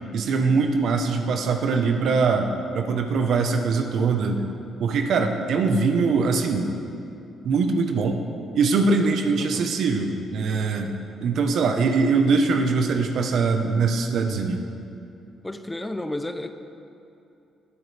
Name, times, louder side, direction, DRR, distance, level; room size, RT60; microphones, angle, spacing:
voice 1, 0.1-4.5 4.8-6.7 7.4-8.2 8.5-10.9 11.2-14.6, right 4 dB, 70° right, 4 dB, 1.1 m, -22 dB
voice 2, 9.4-9.7 15.4-16.5, left 1 dB, 15° left, 8 dB, 0.7 m, -32 dB
19.0 x 9.5 x 3.5 m, 2.8 s
cardioid pair, 90°, 0 cm